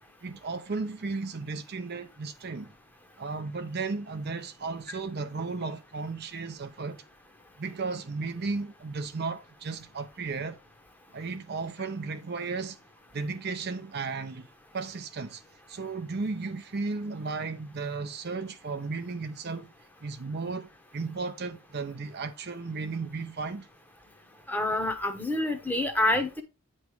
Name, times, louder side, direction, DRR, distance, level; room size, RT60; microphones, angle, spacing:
voice 1, 0.2-2.7 3.2-7.0 7.6-10.6 11.1-12.8 13.1-14.5 14.7-15.4 15.7-19.7 20.0-23.7, right 4 dB, 45° right, 0.6 m, -34 dB
voice 2, 24.5-26.4, left 2 dB, 10° left, 0.9 m, -27 dB
9.3 x 3.2 x 4.7 m
head